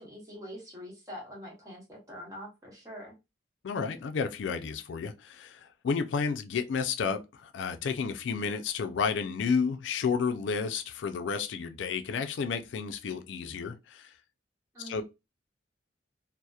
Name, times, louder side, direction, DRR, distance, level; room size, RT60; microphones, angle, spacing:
voice 1, 0.0-3.1 14.7-15.0, equal, 15° right, 0.9 m, -44 dB
voice 2, 3.6-14.1 14.8-15.0, left 5 dB, 85° left, 0.4 m, -31 dB
2.7 x 2.0 x 2.3 m
head